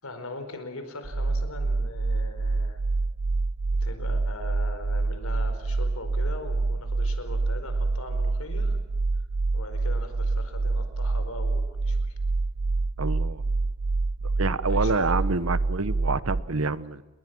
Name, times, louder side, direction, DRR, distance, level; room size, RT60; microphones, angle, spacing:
voice 1, 0.0-2.8 3.8-8.8 9.5-12.1 14.7-15.2, left 2 dB, 85° left, 8 dB, 4.7 m, -40 dB
sound 1, 1.0-16.4, right 3 dB, 55° right, 0.8 m, -27 dB
voice 2, 13.0-13.4 14.4-17.0, right 3 dB, 75° right, 15 dB, 1.1 m, -27 dB
30.0 x 21.5 x 6.2 m, 1.2 s
head